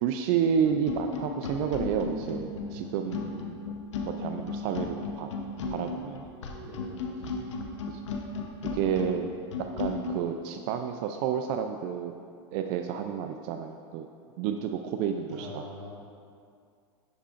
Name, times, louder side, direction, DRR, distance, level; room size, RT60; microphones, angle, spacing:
voice 1, 0.0-3.7 4.0-5.3 5.7-6.3 7.9-8.0 8.7-9.3 9.8-12.1 12.5-14.1 14.4-15.6, right 8 dB, 50° right, 6 dB, 0.4 m, -30 dB
sound 1, 0.6-10.2, left 4 dB, 85° left, 0.8 m, -35 dB
voice 2, 2.6-3.0 6.6-7.3 15.3-15.9, equal, 80° right, -5 dB, 1.4 m, -44 dB
11.0 x 4.9 x 2.5 m, 2.3 s
hypercardioid pair, 115°, 15 cm